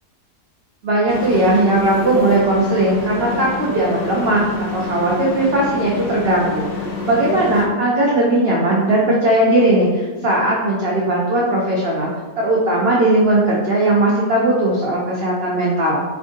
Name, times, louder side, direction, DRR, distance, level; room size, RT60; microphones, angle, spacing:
voice 1, 0.8-6.7 7.0-12.1 12.4-16.0, right 1 dB, 75° right, -4 dB, 0.5 m, -18 dB
sound 1, 1.1-7.7, left 4 dB, 65° left, 1.0 m, -27 dB
3.5 x 2.6 x 3.5 m, 1.3 s
omnidirectional pair, 1.7 m